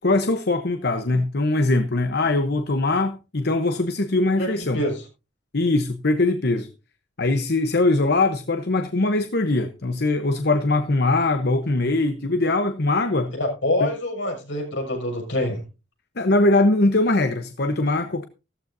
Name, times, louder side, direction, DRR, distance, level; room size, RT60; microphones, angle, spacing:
voice 1, 0.0-4.8 5.5-6.7 7.2-13.3 13.8-13.9 16.2-18.2, left 2 dB, 60° left, 1.0 m, -21 dB
voice 2, 4.4-5.0 13.3-15.6, left 1 dB, 75° left, 6.7 m, -26 dB
15.0 x 14.0 x 2.7 m
head